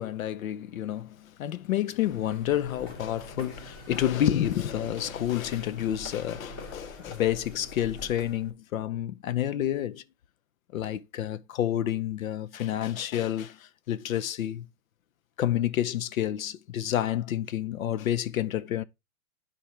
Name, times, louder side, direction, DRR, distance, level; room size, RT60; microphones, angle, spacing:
voice 1, 0.0-10.0 10.7-14.7 15.4-18.8, left 11 dB, 75° left, 0.8 m, -29 dB
sound 1, 2.0-8.5, left 1 dB, 40° left, 3.2 m, -45 dB
11.0 x 4.5 x 3.2 m
hypercardioid pair, 115°, 42 cm